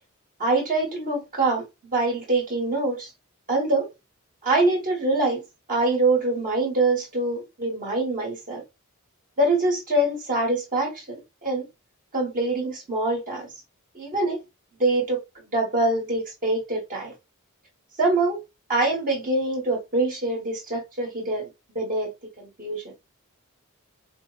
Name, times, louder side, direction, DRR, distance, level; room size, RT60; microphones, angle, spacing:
voice 1, 0.4-1.6 1.9-3.1 3.5-3.9 4.4-5.4 5.7-8.6 9.4-11.7 12.1-13.5 13.9-14.4 14.8-17.1 18.0-18.4 18.7-22.8, right 2 dB, 40° right, 1.1 m, -24 dB
4.3 x 2.0 x 2.3 m
head